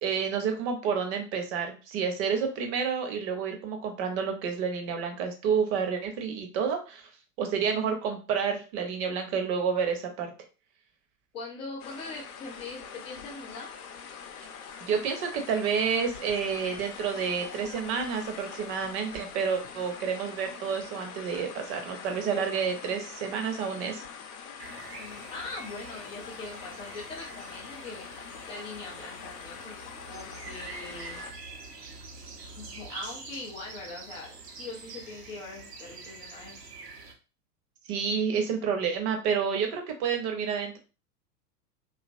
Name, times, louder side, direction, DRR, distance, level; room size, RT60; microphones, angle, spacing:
voice 1, 0.0-7.1 7.4-10.3 14.8-24.0 37.9-40.8, right 6 dB, 40° right, 5 dB, 0.8 m, -29 dB
voice 2, 11.3-13.7 25.0-28.1 28.5-31.8 32.6-36.7, left 3 dB, 15° left, -2 dB, 0.3 m, -42 dB
sound 1, 11.8-31.3, left 6 dB, 60° left, 0.7 m, -44 dB
sound 2, 24.6-37.1, right 4 dB, 75° right, 0.8 m, -46 dB
2.8 x 2.4 x 2.5 m, 0.34 s
figure-of-eight pair, 90°, 48 cm